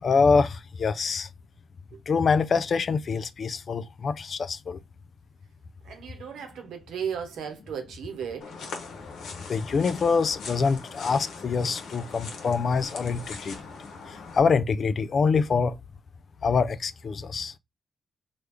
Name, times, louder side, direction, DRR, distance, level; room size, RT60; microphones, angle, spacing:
voice 1, 0.0-1.3 2.1-4.8 9.5-13.6 14.3-15.8 16.4-17.5, left 5 dB, 60° left, 0.3 m, -25 dB
voice 2, 5.8-8.5 9.7-9.9, right 7 dB, 85° right, 0.9 m, -35 dB
sound 1, 8.4-14.4, left 4 dB, 80° left, 0.8 m, -41 dB
3.1 x 2.3 x 3.4 m
supercardioid pair, 55°, 0 cm